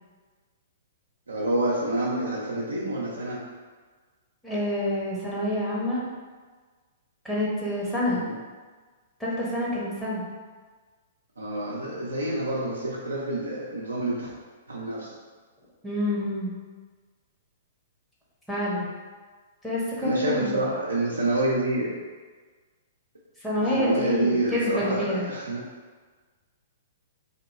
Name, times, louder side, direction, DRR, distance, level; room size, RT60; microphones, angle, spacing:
voice 1, 1.3-3.4 8.1-8.4 11.4-14.3 14.7-15.1 20.0-21.9 23.6-25.6, right 1 dB, 75° right, -6 dB, 0.6 m, -28 dB
voice 2, 4.4-6.0 7.2-8.2 9.2-10.2 15.8-16.5 18.5-18.9 19.6-20.6 23.4-25.3, left 1 dB, 5° left, -8 dB, 1.1 m, -27 dB
3.0 x 2.9 x 4.0 m, 1.4 s
figure-of-eight pair, 110°, 0 cm